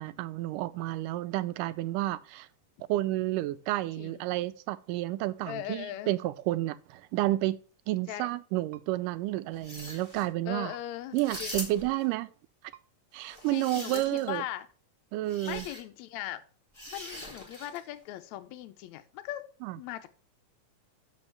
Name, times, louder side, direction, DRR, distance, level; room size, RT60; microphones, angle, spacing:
voice 1, 0.0-2.5 2.9-7.6 7.9-10.7 11.1-12.3 13.1-14.4 15.1-15.7 19.6-19.8, right 16 dB, 90° right, 2.2 m, -31 dB
voice 2, 5.5-6.1 8.1-8.3 10.5-11.5 13.5-14.7 15.5-16.4 16.9-19.4 19.8-20.1, left 13 dB, 75° left, 1.8 m, -39 dB
sound 1, 8.7-8.9 10.7-10.8 12.7-12.8 14.3-14.4, right 13 dB, 70° right, 1.5 m, -51 dB
sound 2, 9.5-10.2 11.1-12.0 13.2-14.4 15.3-15.8 16.7-17.8, left 1 dB, 25° left, 0.6 m, -42 dB
6.8 x 5.3 x 7.1 m
omnidirectional pair, 3.7 m